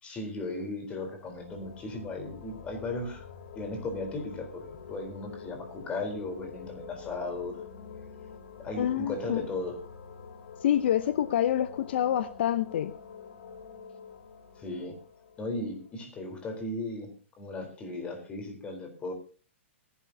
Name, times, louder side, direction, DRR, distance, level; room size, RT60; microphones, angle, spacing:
voice 1, 0.0-3.2 3.5-7.6 8.6-9.8 14.6-15.0 15.4-19.1, left 2 dB, 15° left, 5 dB, 3.8 m, -36 dB
sound 1, 1.0-16.6, left 6 dB, 75° left, 3.3 m, -47 dB
voice 2, 8.8-9.5 10.6-12.9, left 10 dB, 55° left, 12 dB, 0.7 m, -27 dB
24.5 x 11.0 x 2.8 m, 0.37 s
hypercardioid pair, 150°, 7 cm